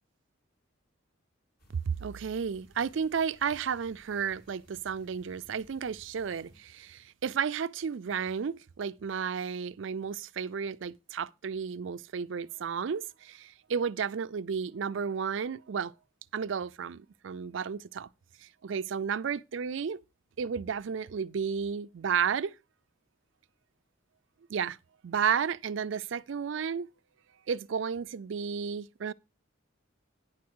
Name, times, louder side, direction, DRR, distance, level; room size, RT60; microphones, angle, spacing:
sound 1, 1.6-6.6, equal, 50° left, 3.2 m, -60 dB
voice 1, 1.9-15.9 16.3-18.1 18.4-20.0 20.4-22.5 24.5-24.8 25.0-26.9 27.5-29.1, right 6 dB, 70° right, 0.4 m, -32 dB
10.0 x 4.7 x 6.1 m
head